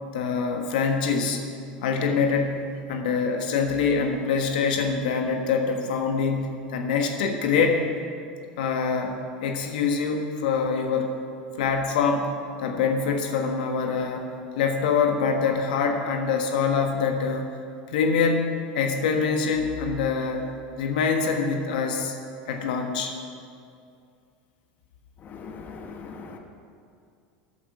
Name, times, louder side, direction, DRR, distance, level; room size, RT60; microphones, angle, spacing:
voice 1, 0.1-1.4 1.8-7.9 8.6-11.1 11.6-14.3 14.6-17.5 17.9-20.4 20.8-22.1 22.5-23.1, left 5 dB, 80° left, 4 dB, 1.3 m, -25 dB
voice 2, 25.3-26.4, left 4 dB, 40° left, 4 dB, 1.2 m, -40 dB
14.0 x 8.3 x 4.8 m, 2.4 s
hypercardioid pair, 100°, 5 cm